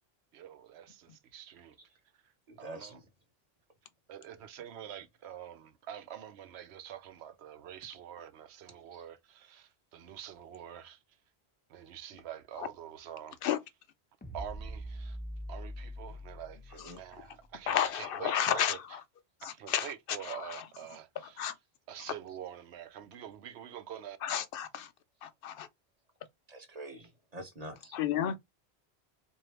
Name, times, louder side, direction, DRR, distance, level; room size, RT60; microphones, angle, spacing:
voice 1, 0.3-1.8 2.6-3.0 4.1-11.0 11.7-13.4 14.3-15.2 15.5-19.0 19.5-21.5 21.9-24.2, right 10 dB, 80° right, 0.9 m, -46 dB
voice 2, 2.5-3.0 8.9-9.0 16.7-17.0 26.5-28.0, right 1 dB, 40° right, 0.8 m, -46 dB
sound 1, 14.2-17.6, equal, 15° left, 0.4 m, -43 dB
voice 3, 17.7-18.8 19.4-19.9 20.3-20.6 21.4-21.5 24.2-24.9 25.2-25.7 27.9-28.4, left 9 dB, 65° left, 0.7 m, -31 dB
3.8 x 2.7 x 3.2 m
omnidirectional pair, 1.1 m